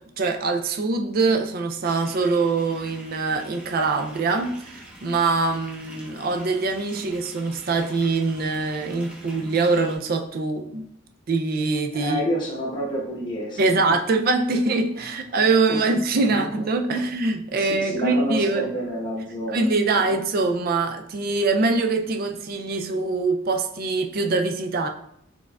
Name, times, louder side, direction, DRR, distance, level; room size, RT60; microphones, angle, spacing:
voice 1, 0.2-10.9 11.3-12.2 13.6-18.7 19.5-24.9, right 3 dB, 45° right, 5 dB, 0.4 m, -23 dB
sound 1, 1.8-10.0, equal, 5° right, 0.6 m, -45 dB
voice 2, 11.9-14.0 14.5-14.6 15.0-15.1 15.7-15.9 16.2-16.5 16.9-17.0 17.6-20.1, equal, 20° left, -4 dB, 1.0 m, -30 dB
4.4 x 3.5 x 2.3 m, 0.69 s
head